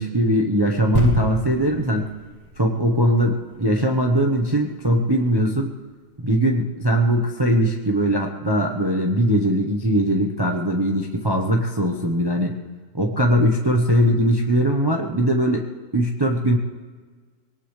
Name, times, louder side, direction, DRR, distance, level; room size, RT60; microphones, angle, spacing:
voice 1, 0.0-2.1 2.6-5.7 6.2-12.6 12.9-15.7 15.9-16.6, equal, 20° right, 2 dB, 0.8 m, -20 dB
sound 1, 0.9-4.5 5.2-5.3, right 1 dB, 40° right, 3.2 m, -28 dB
22.0 x 18.0 x 3.3 m, 1.5 s
omnidirectional pair, 1.8 m